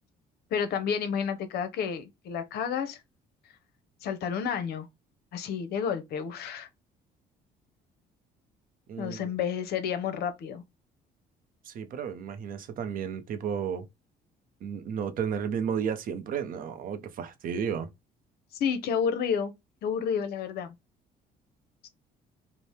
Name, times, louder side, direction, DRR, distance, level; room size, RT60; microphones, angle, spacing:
voice 1, 0.5-3.0 4.0-4.9 5.3-6.7 9.0-10.6 18.6-19.5 19.8-20.7 21.8-21.9, left 7 dB, 70° left, 0.6 m, -30 dB
voice 2, 8.9-9.3 11.6-13.9 14.6-17.9, right 7 dB, 55° right, 0.6 m, -33 dB
2.7 x 2.0 x 3.2 m
cardioid pair, 110°, 17 cm